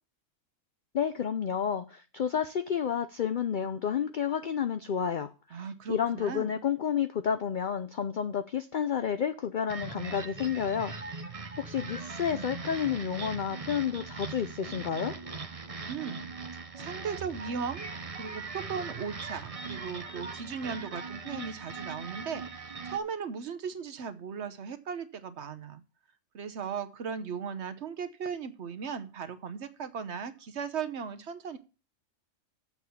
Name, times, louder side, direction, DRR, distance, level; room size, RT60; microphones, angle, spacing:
voice 1, 0.9-10.9 11.6-15.1, left 8 dB, 55° left, 9 dB, 0.6 m, -30 dB
voice 2, 5.5-6.6 15.9-17.9 18.2-25.8 26.3-31.6, right 6 dB, 60° right, 10 dB, 1.1 m, -37 dB
sound 1, 9.7-23.0, right 4 dB, 30° right, 0.8 m, -40 dB
7.2 x 6.2 x 7.0 m, 0.34 s
omnidirectional pair, 1.4 m